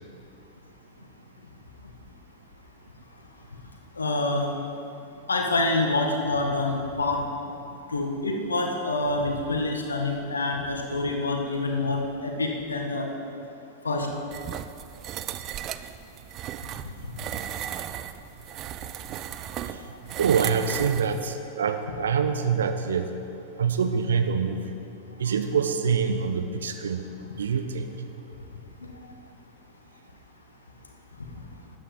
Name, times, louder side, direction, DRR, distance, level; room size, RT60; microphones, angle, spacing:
voice 1, 4.0-4.5 5.3-7.2 7.9-13.1 13.8-14.1, left 2 dB, 75° left, 2 dB, 1.4 m, -26 dB
sound 1, 14.3-21.3, right 11 dB, 35° right, 0.4 m, -35 dB
voice 2, 20.2-23.1 23.6-24.8 25.2-27.1 27.4-27.9, right 6 dB, 65° right, 8 dB, 0.8 m, -25 dB
13.0 x 9.4 x 5.2 m, 2.7 s
figure-of-eight pair, 90°, 0 cm